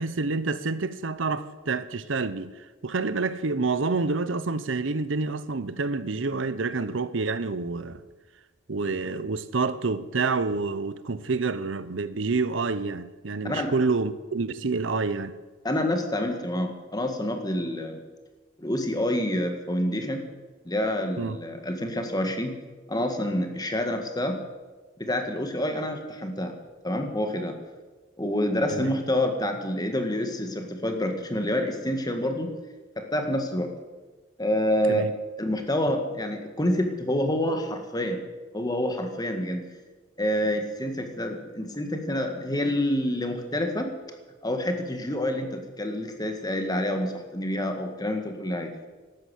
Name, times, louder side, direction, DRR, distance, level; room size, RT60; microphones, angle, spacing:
voice 1, 0.0-2.5 2.8-8.0 8.7-15.3 21.2-21.4 28.7-28.9 34.9-35.1, right 3 dB, 80° right, 0.8 m, -28 dB
voice 2, 15.6-18.0 18.6-20.2 20.6-22.5 22.9-24.4 25.0-26.5 26.8-27.6 28.2-32.5 33.0-33.7 34.4-35.1 35.4-38.2 38.5-39.6 40.2-43.9 44.4-48.7, left 1 dB, 20° left, 1.8 m, -27 dB
13.0 x 12.0 x 8.3 m
head